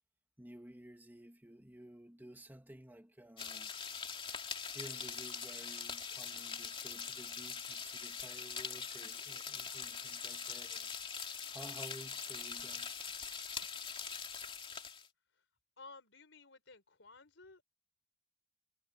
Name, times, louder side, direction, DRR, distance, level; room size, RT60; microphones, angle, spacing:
voice 1, 0.4-3.7 4.7-10.9 11.5-13.0, right 1 dB, 10° right, 2.3 m, -54 dB
sound 1, 3.4-15.1, left 6 dB, 30° left, 2.7 m, -43 dB
voice 2, 15.8-17.6, left 3 dB, 75° left, 5.0 m, -56 dB
head